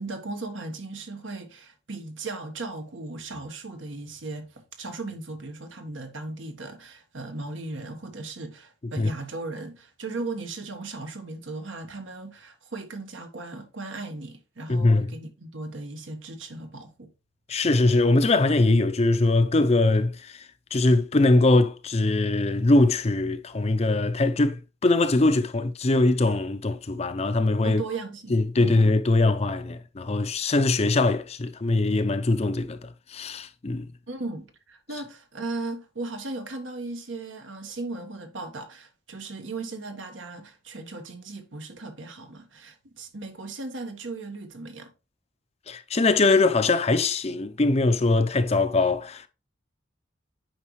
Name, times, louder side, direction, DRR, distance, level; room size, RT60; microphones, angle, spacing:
voice 1, 0.0-17.1 27.6-28.8 34.1-44.9, right 3 dB, 75° right, 1.3 m, -37 dB
voice 2, 14.7-15.1 17.5-20.5 20.7-27.8 28.3-33.9 45.7-49.3, left 2 dB, 30° left, 0.5 m, -22 dB
8.8 x 5.2 x 3.1 m
head